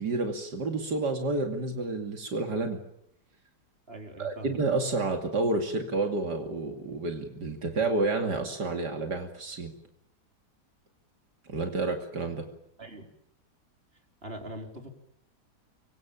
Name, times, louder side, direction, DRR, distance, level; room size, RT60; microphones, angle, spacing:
voice 1, 0.0-2.8 4.2-9.7 11.5-12.4, right 3 dB, 80° right, 4 dB, 3.1 m, -30 dB
voice 2, 3.9-4.6 12.8-13.0 14.2-14.9, right 1 dB, 35° right, 3 dB, 4.9 m, -41 dB
25.5 x 24.0 x 9.0 m, 0.78 s
omnidirectional pair, 1.8 m